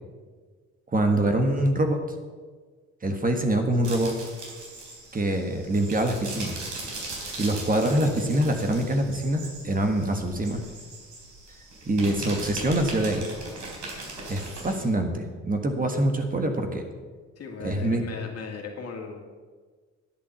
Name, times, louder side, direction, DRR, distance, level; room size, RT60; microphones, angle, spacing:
voice 1, 0.9-2.0 3.0-4.1 5.1-6.6 7.4-10.6 11.9-13.3 14.3-16.8 17.6-18.0, right 1 dB, 30° right, 5 dB, 1.6 m, -24 dB
sound 1, 3.8-14.8, right 2 dB, 70° right, 4.0 m, -39 dB
voice 2, 17.4-19.2, left 5 dB, 55° left, 1 dB, 2.5 m, -37 dB
10.5 x 8.5 x 7.1 m, 1.5 s
cardioid pair, 90°, 30 cm